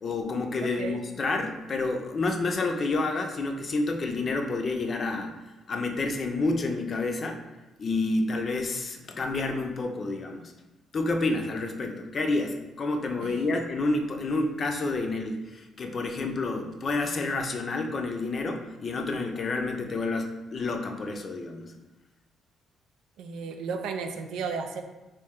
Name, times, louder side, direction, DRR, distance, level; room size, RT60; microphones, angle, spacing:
voice 1, 0.0-5.3 5.7-7.4 7.8-10.4 10.9-21.7, left 3 dB, 45° left, 4 dB, 0.5 m, -29 dB
voice 2, 0.6-1.0 13.2-13.4 23.2-24.8, right 5 dB, 85° right, 6 dB, 0.4 m, -34 dB
3.1 x 2.6 x 3.6 m, 1.1 s
cardioid pair, 90°, 0 cm